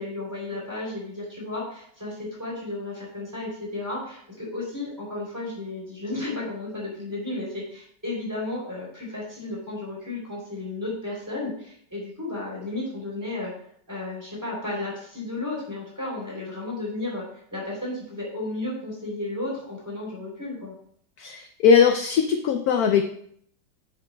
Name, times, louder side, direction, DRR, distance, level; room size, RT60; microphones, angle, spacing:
voice 1, 0.0-13.5 13.9-17.3 17.5-20.7, left 2 dB, 10° right, -4 dB, 3.3 m, -33 dB
voice 2, 21.2-23.0, left 6 dB, 70° left, 6 dB, 0.9 m, -20 dB
8.9 x 7.7 x 2.3 m, 0.65 s
omnidirectional pair, 1.9 m